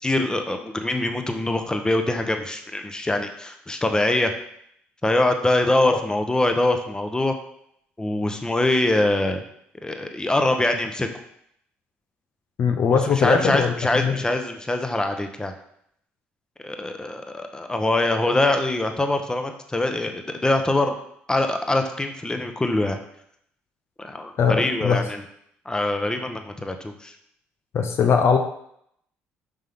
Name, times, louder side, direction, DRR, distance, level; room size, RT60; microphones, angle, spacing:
voice 1, 0.0-4.3 5.0-7.3 8.0-9.4 9.8-11.1 13.1-15.5 16.6-20.9 21.3-23.0 24.0-25.2 25.6-27.1, left 2 dB, 15° left, 6 dB, 1.1 m, -23 dB
voice 2, 12.6-14.1 24.4-25.0 27.7-28.4, left 6 dB, 55° left, 5 dB, 0.8 m, -20 dB
7.3 x 5.6 x 3.7 m, 0.71 s
hypercardioid pair, 55°, 5 cm